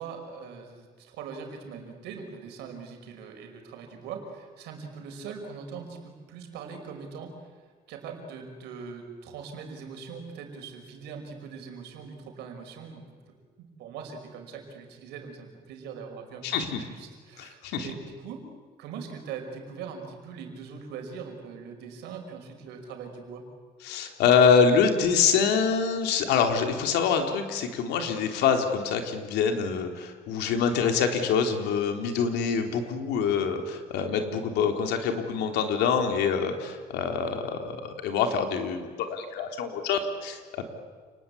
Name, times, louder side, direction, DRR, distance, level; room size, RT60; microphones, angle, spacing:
voice 1, 0.0-7.6 7.9-13.1 13.6-18.4 18.8-23.5, right 6 dB, 85° right, 4 dB, 5.2 m, -41 dB
voice 2, 16.4-16.8 17.4-17.9 23.8-40.6, left 6 dB, 85° left, 5 dB, 3.5 m, -25 dB
29.0 x 20.0 x 8.5 m, 1.5 s
cardioid pair, 110°, 17 cm